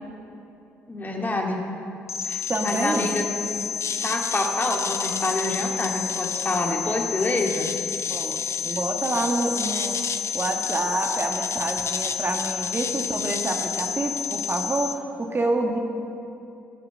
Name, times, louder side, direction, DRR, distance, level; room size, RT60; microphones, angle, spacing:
voice 1, 0.9-1.6 2.2-3.2 4.0-7.7, left 2 dB, 30° left, 0 dB, 2.2 m, -27 dB
sound 1, 2.1-15.0, left 7 dB, 45° left, 0.9 m, -29 dB
voice 2, 2.5-3.1 8.1-10.0 10.3-15.8, right 2 dB, 35° right, 2 dB, 1.6 m, -27 dB
16.0 x 6.7 x 7.7 m, 2.7 s
hypercardioid pair, 45°, 7 cm